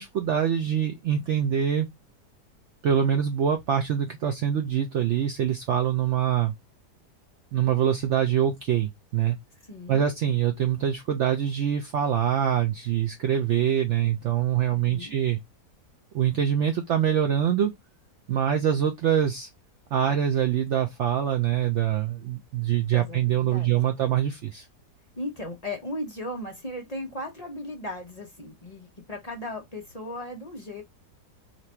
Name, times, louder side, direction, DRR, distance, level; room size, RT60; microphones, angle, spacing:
voice 1, 0.0-1.9 2.8-6.5 7.5-9.4 9.9-15.4 16.1-17.7 18.3-19.5 19.9-24.7, right 9 dB, 75° right, 0.6 m, -24 dB
voice 2, 9.7-10.0 14.7-15.1 22.9-23.7 25.2-30.8, left 1 dB, 35° left, 0.6 m, -36 dB
2.9 x 2.5 x 4.3 m
omnidirectional pair, 1.8 m